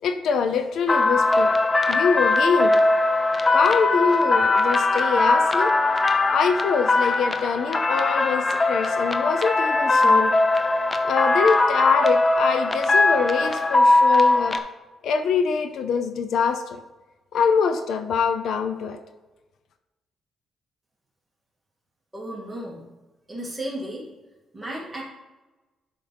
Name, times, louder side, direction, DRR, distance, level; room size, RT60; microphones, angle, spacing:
voice 1, 0.0-1.6 1.9-2.8 3.5-5.7 6.3-10.3 11.0-14.6 15.0-16.8 17.3-19.0, left 6 dB, 70° left, 7 dB, 0.6 m, -24 dB
sound 1, 0.9-14.6, left 2 dB, 20° left, 0.6 m, -20 dB
voice 2, 22.1-22.9 23.3-24.1 24.5-25.0, right 1 dB, 10° right, -5 dB, 2.4 m, -34 dB
11.5 x 5.2 x 3.4 m, 1.1 s
cardioid pair, 150°, 0 cm